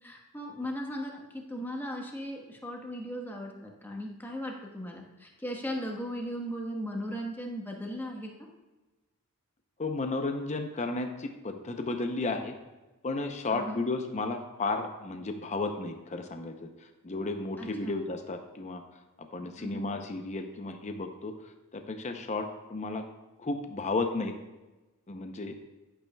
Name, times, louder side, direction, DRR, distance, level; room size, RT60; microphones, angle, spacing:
voice 1, 0.0-8.3 13.5-13.8 17.6-18.0 19.6-19.9, equal, 10° left, 0 dB, 1.2 m, -37 dB
voice 2, 9.8-12.6 13.0-16.7 17.0-18.8 19.2-21.3 21.7-23.0 23.4-24.3 25.1-25.5, left 3 dB, 30° left, 6 dB, 0.6 m, -33 dB
11.0 x 8.8 x 2.3 m, 1.1 s
head